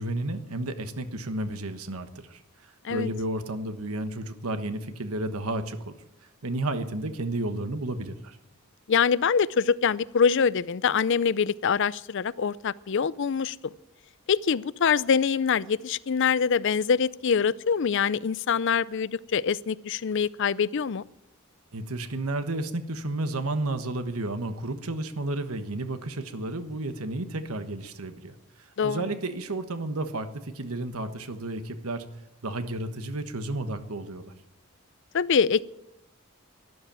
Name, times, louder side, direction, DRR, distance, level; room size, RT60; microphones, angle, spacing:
voice 1, 0.0-5.9 6.4-8.4 21.7-32.1 32.4-34.3, right 2 dB, 85° right, 9 dB, 1.3 m, -32 dB
voice 2, 8.9-13.7 14.3-21.0 28.8-29.0 35.1-35.6, left 6 dB, 55° left, 20 dB, 0.5 m, -24 dB
12.5 x 12.0 x 8.8 m, 0.90 s
head